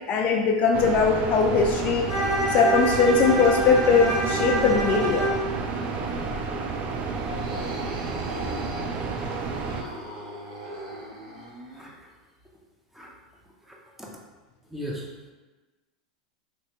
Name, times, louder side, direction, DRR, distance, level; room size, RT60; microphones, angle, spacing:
voice 1, 0.1-2.1 2.5-5.3, left 4 dB, 40° left, 2 dB, 0.4 m, -20 dB
sound 1, 0.7-9.8, right 4 dB, 40° right, 0.4 m, -31 dB
Bowed string instrument, 2.1-5.5, right 1 dB, 85° right, 1.4 m, -27 dB
sound 2, 7.2-11.9, right 1 dB, 70° right, 1.1 m, -39 dB
voice 2, 8.3-8.6 9.8-10.0 11.7-12.1 12.9-13.1 13.7-14.1 14.7-15.1, equal, 5° right, -2 dB, 0.7 m, -39 dB
3.2 x 2.9 x 3.0 m, 1.2 s
hypercardioid pair, 100°, 4 cm